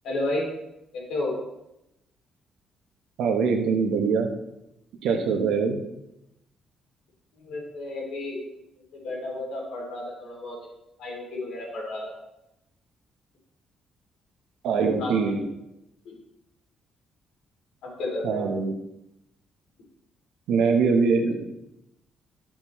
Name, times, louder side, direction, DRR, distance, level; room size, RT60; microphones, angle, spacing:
voice 1, 0.0-0.5 0.9-1.4 7.3-8.4 8.9-10.6 11.0-12.2 15.0-15.3 16.0-16.2 17.8-18.5, left 2 dB, 85° left, -2 dB, 2.9 m, -32 dB
voice 2, 3.2-4.3 5.0-5.8 14.6-15.4 18.2-18.7 20.5-21.4, right 5 dB, 85° right, 4 dB, 1.1 m, -23 dB
11.5 x 7.3 x 3.1 m, 0.88 s
cardioid pair, 90°, 0 cm